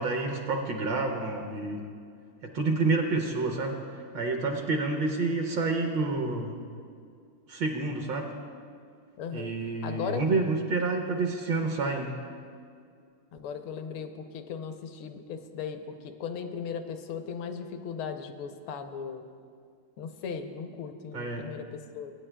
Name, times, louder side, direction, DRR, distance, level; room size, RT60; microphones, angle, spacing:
voice 1, 0.0-1.9 2.4-3.8 4.1-6.5 7.5-8.3 9.3-12.1 21.1-21.5, right 3 dB, 70° right, 3 dB, 1.4 m, -29 dB
voice 2, 9.2-9.5 9.8-10.2 13.3-19.2 20.0-22.1, left 6 dB, 75° left, 7 dB, 1.5 m, -37 dB
21.0 x 9.3 x 2.2 m, 2.2 s
omnidirectional pair, 2.4 m